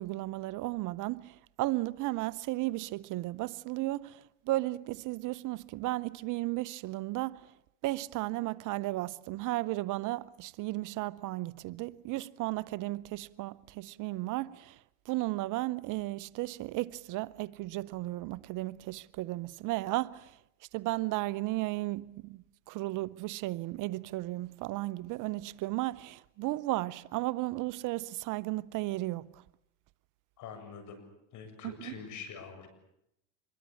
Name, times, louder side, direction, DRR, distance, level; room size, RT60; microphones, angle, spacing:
voice 1, 0.0-7.5 7.8-14.8 15.1-20.4 20.7-29.4 31.6-31.9, right 18 dB, 60° right, 0.9 m, -34 dB
voice 2, 30.4-31.0 31.3-32.7, left 6 dB, 55° left, 7.6 m, -45 dB
26.0 x 22.0 x 8.5 m
supercardioid pair, 105°, 35 cm